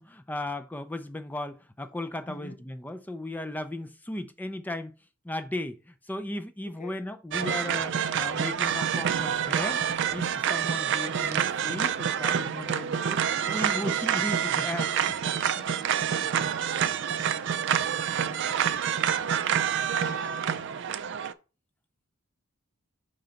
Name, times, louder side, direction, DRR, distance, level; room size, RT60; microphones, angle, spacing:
voice 1, 0.0-4.9 5.2-9.8 10.1-15.2, left 1 dB, 10° left, 0.4 m, -36 dB
voice 2, 2.3-2.6 6.6-7.1 12.6-13.0 15.6-17.2 17.6-18.7 20.0-20.6, left 2 dB, 35° left, 0.7 m, -48 dB
sound 1, 7.3-21.3, right 8 dB, 55° right, 0.4 m, -27 dB
5.0 x 3.9 x 5.7 m
head